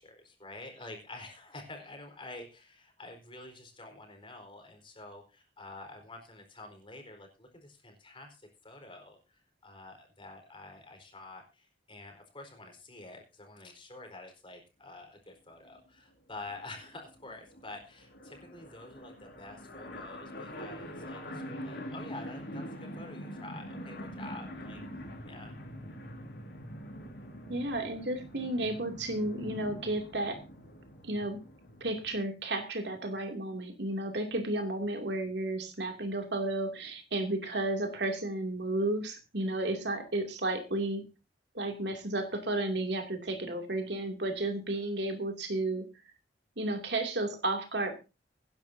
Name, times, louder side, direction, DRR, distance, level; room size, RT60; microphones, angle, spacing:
voice 1, 0.0-8.4 8.6-24.8 25.3-25.6, left 2 dB, 30° left, 3 dB, 4.3 m, -48 dB
sound 1, 15.7-15.8 16.1-16.2 16.3-32.2, equal, 70° left, 5.3 m, -44 dB
voice 2, 27.5-30.4 31.0-31.4 31.8-41.0 41.5-45.8 46.6-47.9, right 2 dB, 70° right, 4 dB, 2.6 m, -32 dB
23.5 x 10.5 x 2.7 m, 0.29 s
head